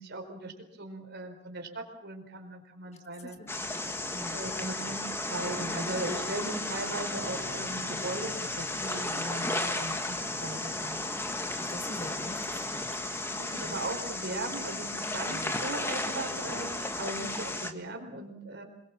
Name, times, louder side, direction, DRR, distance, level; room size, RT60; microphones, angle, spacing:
voice 1, 0.0-3.4 4.3-11.0 13.3-18.6, right 2 dB, 50° right, 4 dB, 4.5 m, -38 dB
voice 2, 2.9-3.5 3.9-4.5 11.6-13.0 13.6-13.8 15.3-15.6, left 2 dB, 30° left, 6 dB, 1.9 m, -45 dB
sound 1, 3.5-17.7, left 2 dB, 10° left, 1.5 m, -34 dB
sound 2, 7.1-13.5, left 1 dB, 55° left, 4.5 m, -53 dB
27.0 x 21.5 x 7.2 m, 0.77 s
head